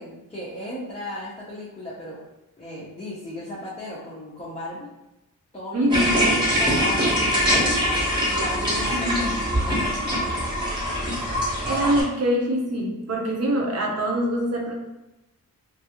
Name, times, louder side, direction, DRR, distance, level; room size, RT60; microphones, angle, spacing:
voice 1, 0.0-2.2 2.6-4.9 5.5-6.0 6.6-10.5, left 1 dB, 20° left, -7 dB, 0.4 m, -36 dB
voice 2, 5.7-6.4 8.9-9.3 11.7-14.8, equal, 45° right, 0 dB, 0.5 m, -24 dB
sound 1, 5.9-12.0, equal, 15° right, 0.8 m, -23 dB
2.4 x 2.3 x 2.8 m, 0.95 s
wide cardioid pair, 175°, 35 cm